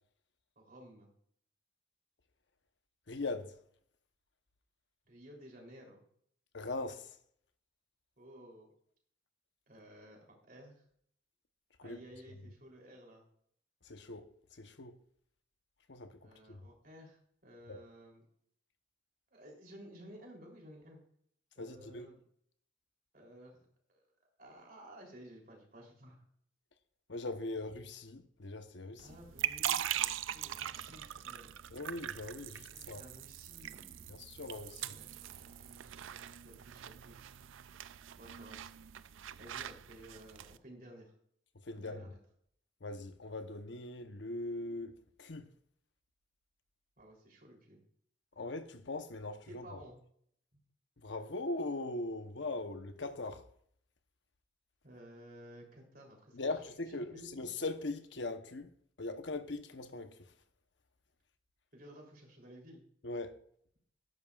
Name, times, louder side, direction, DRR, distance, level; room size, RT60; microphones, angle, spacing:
voice 1, 0.6-1.1 5.1-6.0 8.2-8.7 9.7-10.2 10.5-10.8 11.8-13.2 16.2-18.2 19.3-21.0 21.5-22.2 23.1-23.6 23.9-24.1 24.4-26.2 29.0-31.6 32.8-34.1 34.8-36.0 36.4-37.2 38.2-38.6 39.4-41.1 41.7-42.2 47.0-47.8 49.5-50.0 54.8-56.5 56.9-57.5 61.7-62.8, equal, 45° right, 3.3 m, -54 dB
voice 2, 3.1-3.6 6.5-7.2 11.8-12.0 13.8-15.0 15.9-16.6 17.7-17.8 21.6-22.1 27.1-29.1 31.7-33.0 34.1-34.9 41.6-42.1 42.8-45.5 48.4-49.8 51.0-53.5 56.3-60.2 63.0-63.4, left 2 dB, 70° left, 0.9 m, -41 dB
sound 1, 29.0-40.6, right 11 dB, 90° right, 0.4 m, -41 dB
12.0 x 11.0 x 2.4 m
head